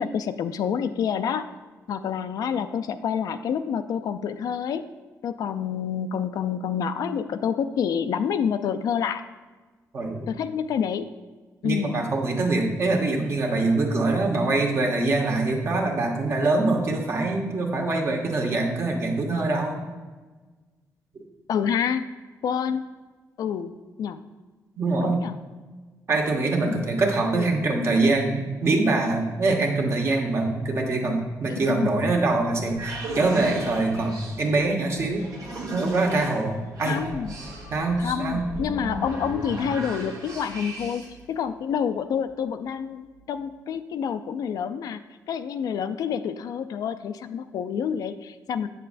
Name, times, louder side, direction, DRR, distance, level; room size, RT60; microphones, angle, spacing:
voice 1, 0.0-1.5 1.9-4.9 5.2-9.2 10.3-11.1 11.6-12.0 21.5-22.1 22.4-22.8 23.4-23.7 24.0-24.2 25.0-25.3 26.7-26.9 27.3-27.5 31.6-31.9 36.8-37.3 38.0-45.0 45.3-48.7, left 7 dB, 70° left, 11 dB, 0.3 m, -28 dB
voice 2, 9.9-10.3 11.6-19.8 24.8-25.2 26.1-35.2 35.7-37.0 37.7-38.4, right 2 dB, 45° right, 1 dB, 1.1 m, -24 dB
sound 1, 32.6-41.2, right 1 dB, 90° right, 1.7 m, -36 dB
8.2 x 6.7 x 2.5 m, 1.3 s
cardioid pair, 120°, 6 cm